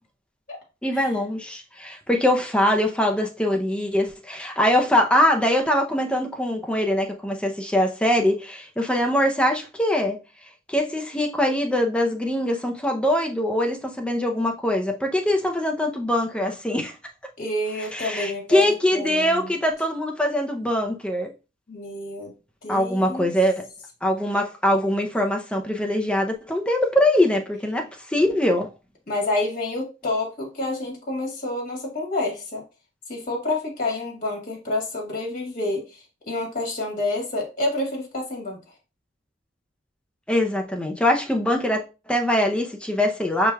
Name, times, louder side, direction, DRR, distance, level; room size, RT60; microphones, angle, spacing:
voice 1, 0.8-10.2 10.7-16.9 17.9-21.3 22.7-23.7 24.0-28.7 40.3-41.8 42.1-43.5, left 1 dB, 5° left, 0.5 m, -22 dB
voice 2, 17.4-19.6 21.7-22.4 22.6-23.3 29.1-32.6 33.1-38.6, left 2 dB, 45° left, 1.5 m, -28 dB
5.4 x 3.2 x 2.3 m
head